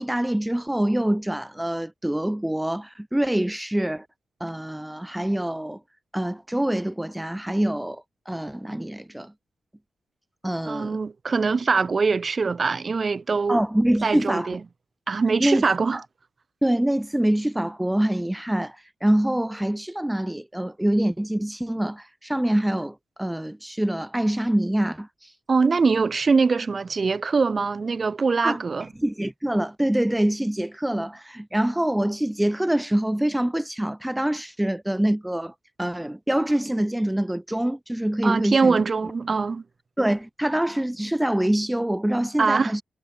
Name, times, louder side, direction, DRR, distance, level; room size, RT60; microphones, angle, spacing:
voice 1, 0.0-4.1 4.4-5.8 6.1-9.3 10.4-11.0 13.5-14.6 15.4-15.6 15.9-16.0 16.6-25.3 28.4-28.6 29.0-38.8 40.0-42.8, right 1 dB, 5° right, 1.2 m, -25 dB
voice 2, 10.7-13.6 14.0-14.6 15.1-16.0 25.5-28.9 38.2-39.6 42.4-42.8, right 4 dB, 35° right, 2.6 m, -23 dB
wide cardioid pair, 120°, 0 cm